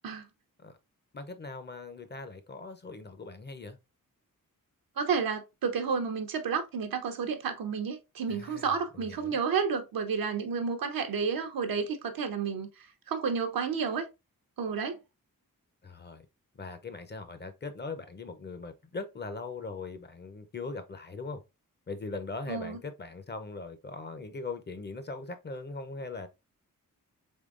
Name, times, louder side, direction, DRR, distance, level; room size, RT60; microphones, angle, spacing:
voice 1, 1.1-3.8 8.3-9.3 15.8-16.3 16.6-21.4 21.9-26.3, left 3 dB, 30° left, 0.5 m, -40 dB
voice 2, 5.0-12.7 13.1-14.1 14.6-15.0 22.5-22.8, right 6 dB, 85° right, 0.7 m, -31 dB
3.6 x 3.4 x 2.4 m
wide cardioid pair, 100°, 34 cm